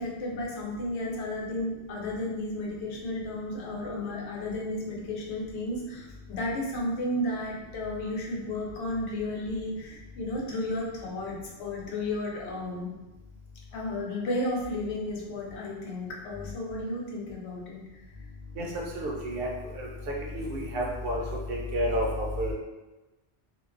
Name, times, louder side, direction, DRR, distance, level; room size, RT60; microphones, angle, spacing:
voice 1, 0.0-12.9 13.7-18.0, left 1 dB, 75° left, -3 dB, 0.9 m, -33 dB
voice 2, 18.6-19.9 20.2-21.2 21.5-22.5, equal, 65° right, -2 dB, 0.7 m, -30 dB
2.5 x 2.2 x 2.4 m, 1.1 s
omnidirectional pair, 1.1 m